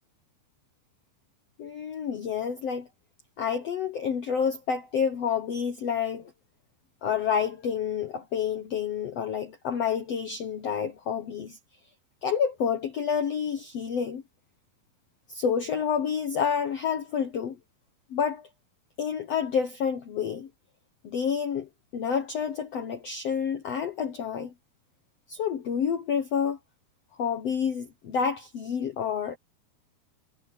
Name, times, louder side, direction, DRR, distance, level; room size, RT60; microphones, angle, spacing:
voice 1, 1.6-2.9 3.4-6.3 7.0-11.6 12.2-14.2 15.3-17.6 18.1-18.5 19.0-20.5 21.0-24.5 25.3-26.6 27.2-29.4, left 7 dB, 75° left, 1.4 m, -29 dB
omnidirectional pair, 4.7 m